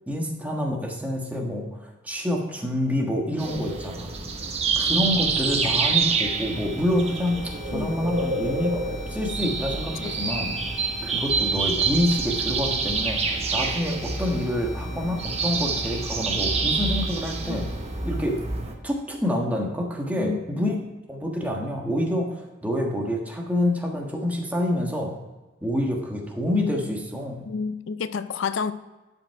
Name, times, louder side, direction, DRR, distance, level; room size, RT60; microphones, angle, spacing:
voice 1, 0.1-4.1 4.8-10.5 11.0-17.7 18.0-18.4 18.8-20.8 21.1-25.1 25.6-27.5, left 1 dB, 10° right, 0 dB, 1.4 m, -27 dB
sound 1, 3.4-18.7, right 4 dB, 35° right, 1.0 m, -27 dB
sound 2, 6.0-20.0, left 2 dB, 30° left, 2.4 m, -47 dB
voice 2, 20.1-20.6 27.4-28.7, left 5 dB, 80° left, 13 dB, 0.4 m, -30 dB
11.5 x 5.4 x 4.7 m, 1.2 s
head